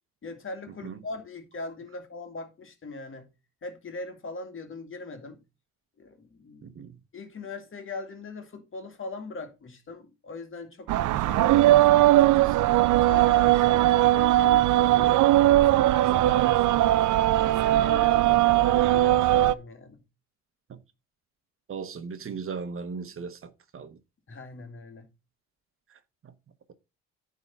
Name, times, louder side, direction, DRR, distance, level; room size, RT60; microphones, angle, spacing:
voice 1, 0.2-3.3 3.6-5.4 6.0-6.8 7.1-12.6 13.1-15.2 15.7-16.9 17.4-20.0 24.3-25.1, left 3 dB, 40° left, 2.2 m, -41 dB
sound 1, 10.9-19.5, right 15 dB, 80° right, 0.6 m, -20 dB
voice 2, 21.7-24.0, right 5 dB, 45° right, 1.1 m, -37 dB
9.7 x 3.8 x 5.4 m
cardioid pair, 90°, 30 cm